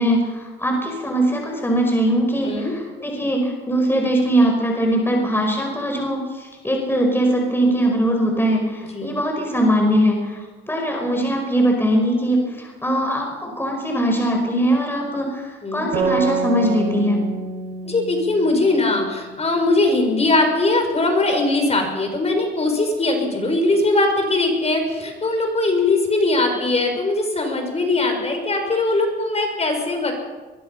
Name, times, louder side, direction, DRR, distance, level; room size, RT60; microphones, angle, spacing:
voice 1, 0.0-10.4 10.7-17.2, right 1 dB, 10° left, 1 dB, 5.3 m, -21 dB
sound 1, 15.9-19.4, right 4 dB, 85° right, 6.3 m, -27 dB
voice 2, 17.8-30.1, left 2 dB, 30° left, 4 dB, 6.2 m, -20 dB
22.5 x 22.0 x 5.7 m, 1.3 s
cardioid pair, 90°, 20 cm